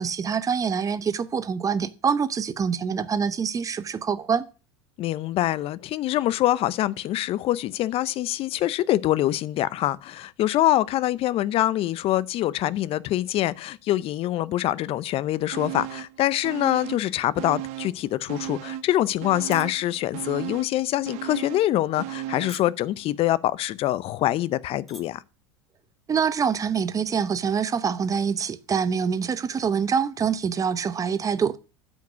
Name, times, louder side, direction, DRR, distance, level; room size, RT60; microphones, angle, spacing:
voice 1, 0.0-4.4 26.1-31.6, right 6 dB, 25° right, 0.8 m, -25 dB
voice 2, 5.0-25.2, left 14 dB, 45° left, 0.6 m, -25 dB
sound 1, 15.5-16.2 16.4-18.0 18.3-22.7 23.0-23.1, right 14 dB, 55° right, 0.7 m, -36 dB
sound 2, 19.5-19.8 20.2-20.5 21.1-21.3 22.0-22.2 22.5-22.9 23.7-23.8 24.1-24.2 24.7-25.0 25.3-25.6, equal, ahead, 1.7 m, -44 dB
9.1 x 5.3 x 6.1 m
hypercardioid pair, 90°, 14 cm